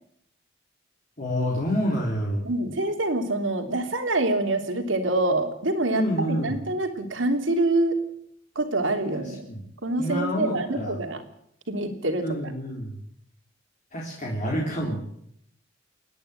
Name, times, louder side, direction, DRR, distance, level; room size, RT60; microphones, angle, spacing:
voice 1, 1.2-2.4 5.9-6.6 9.2-9.6 10.0-11.0 12.2-13.0 13.9-15.0, equal, 40° left, -3 dB, 3.9 m, -28 dB
voice 2, 2.4-8.0 8.5-9.5 9.8-11.2 11.7-12.5 14.8-15.0, right 2 dB, 75° right, 5 dB, 3.2 m, -26 dB
29.0 x 10.5 x 9.0 m, 0.72 s
head